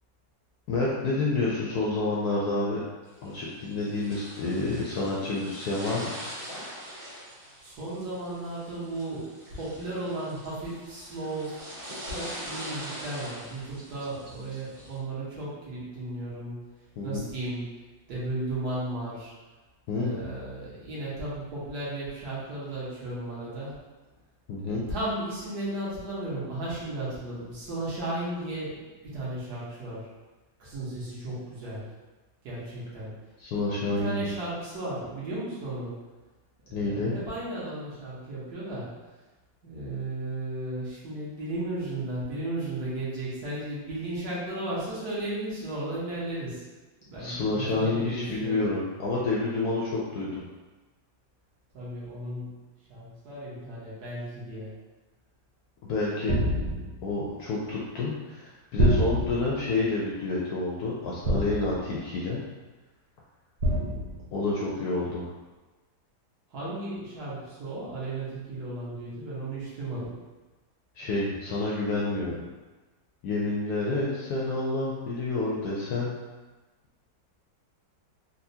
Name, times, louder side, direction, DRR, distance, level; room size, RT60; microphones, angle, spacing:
voice 1, 0.7-2.8 3.2-6.1 17.0-17.3 19.9-20.2 24.5-24.8 33.4-34.3 36.7-37.1 47.2-50.4 55.8-56.4 57.0-62.4 64.3-65.3 71.0-72.4 73.2-76.1, left 3 dB, 75° left, -5 dB, 0.9 m, -29 dB
sound 1, 3.1-15.0, equal, 20° right, 1.2 m, -43 dB
voice 2, 7.6-11.5 12.1-16.7 17.0-17.7 18.1-19.3 19.9-23.7 24.6-30.1 30.6-31.9 32.4-33.1 33.9-36.0 36.7-38.9 39.6-46.6 47.1-48.7 51.7-52.6 52.9-54.7 66.5-70.1, right 1 dB, 60° right, -8 dB, 1.4 m, -35 dB
sound 2, 56.3-57.1 58.8-59.6 61.2-62.0 63.6-64.2, right 1 dB, 85° right, 1.5 m, -26 dB
4.1 x 2.3 x 2.7 m, 1.2 s
omnidirectional pair, 2.1 m